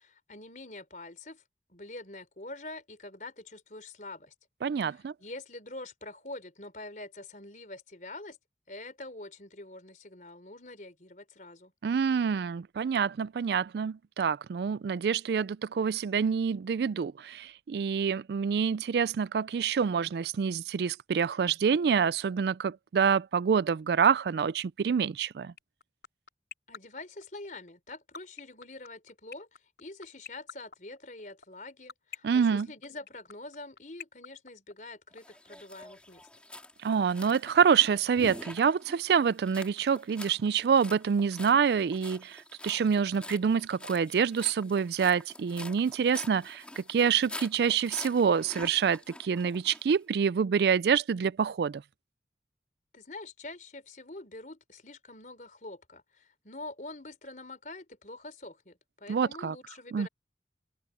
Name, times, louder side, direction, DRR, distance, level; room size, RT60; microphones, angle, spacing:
voice 1, 0.0-1.4 1.7-4.3 4.8-8.4 8.7-11.7 26.7-29.5 29.8-36.3 52.9-60.1, left 2 dB, 45° left, 4.3 m, -45 dB
voice 2, 4.6-5.1 11.8-25.5 32.2-32.7 36.8-51.8 59.1-59.5 59.9-60.1, right 6 dB, 65° right, 0.3 m, -27 dB
sound 1, 25.6-35.2, left 7 dB, 65° left, 3.9 m, -43 dB
sound 2, 35.2-50.0, left 1 dB, 5° left, 4.0 m, -46 dB
head